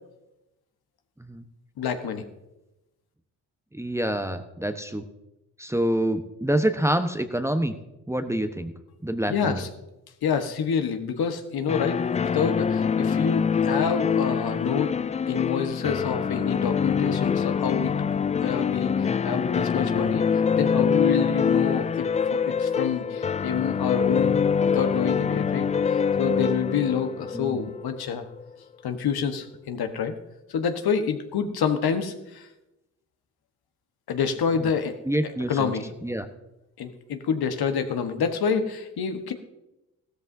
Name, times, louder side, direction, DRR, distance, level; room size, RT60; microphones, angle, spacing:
voice 1, 1.8-2.3 9.3-9.7 10.2-14.9 15.3-17.9 18.4-20.3 20.6-24.4 24.7-28.2 28.8-30.1 30.5-32.5 34.1-35.0 35.2-35.9 36.8-39.3, left 6 dB, 60° left, 7 dB, 1.4 m, -27 dB
voice 2, 3.7-5.1 5.6-7.8 8.1-8.7 9.0-9.6 27.3-27.6 35.1-35.7 36.0-36.3, right 1 dB, 5° right, 8 dB, 1.1 m, -26 dB
sound 1, 11.7-28.4, left 6 dB, 20° left, 0.3 m, -25 dB
16.5 x 13.0 x 2.8 m, 0.97 s
hypercardioid pair, 45°, 42 cm